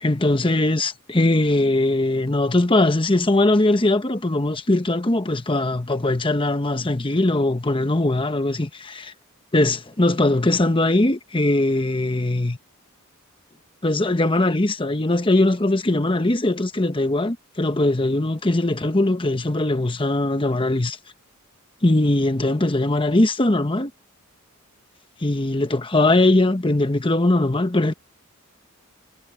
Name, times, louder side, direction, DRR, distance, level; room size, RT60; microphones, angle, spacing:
voice 1, 0.0-9.1 9.5-12.6 13.8-21.0 21.8-23.9 25.2-27.9, left 2 dB, 25° left, 1.1 m, -20 dB
head